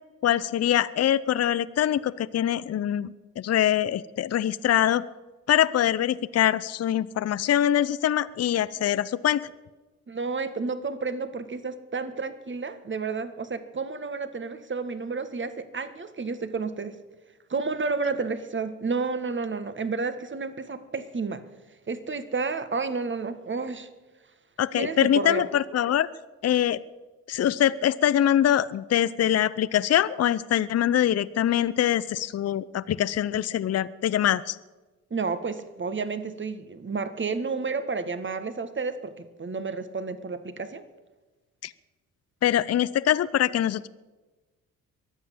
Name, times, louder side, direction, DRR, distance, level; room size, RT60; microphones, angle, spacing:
voice 1, 0.2-5.1 5.5-9.5 24.6-26.1 26.4-26.8 27.3-34.6 41.6-41.7 42.4-43.9, left 11 dB, 40° left, 17 dB, 0.7 m, -24 dB
voice 2, 10.1-17.0 17.5-21.4 21.9-23.9 24.7-25.4 35.1-40.8, right 4 dB, 30° right, 12 dB, 1.6 m, -31 dB
23.0 x 8.3 x 7.1 m, 1.2 s
hypercardioid pair, 45°, 39 cm